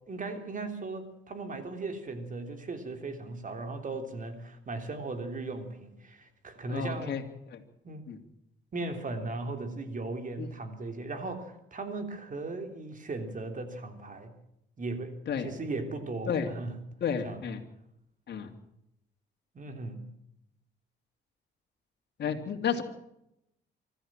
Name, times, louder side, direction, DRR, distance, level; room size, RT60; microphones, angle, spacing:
voice 1, 0.1-7.2 7.8-8.0 8.7-14.3 14.8-16.8 17.2-17.4 19.5-20.0, right 3 dB, 40° right, 7 dB, 3.5 m, -37 dB
voice 2, 6.7-7.2 7.5-7.6 8.1-8.2 10.4-10.5 15.3-15.5 16.3-16.5 17.0-17.6 18.3-18.5 22.2-22.8, left 7 dB, 60° left, 4 dB, 3.1 m, -31 dB
25.0 x 14.0 x 7.6 m, 0.82 s
cardioid pair, 90°, 20 cm